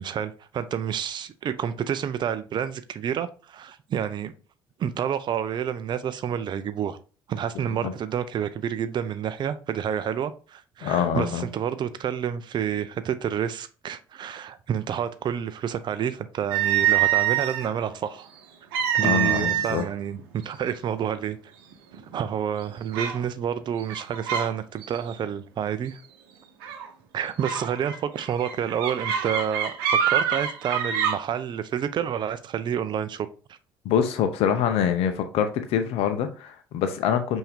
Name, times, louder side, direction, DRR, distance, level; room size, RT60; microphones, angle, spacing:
voice 1, 0.0-4.3 4.8-7.0 7.3-18.3 18.9-20.2 20.4-21.4 21.9-26.0 27.1-29.7 30.1-33.3, right 8 dB, 40° right, 0.5 m, -29 dB
voice 2, 10.8-11.4 19.0-19.8 33.8-37.4, left 8 dB, 55° left, 0.6 m, -25 dB
sound 1, 16.5-17.7 18.7-19.9 20.2-20.4 21.1-21.2 21.7-22.2 22.9-23.2 23.8-24.5 24.8-25.1 26.6-26.9 27.4-31.1, right 10 dB, 70° right, 0.8 m, -25 dB
5.5 x 2.7 x 3.5 m
figure-of-eight pair, 55°, 12 cm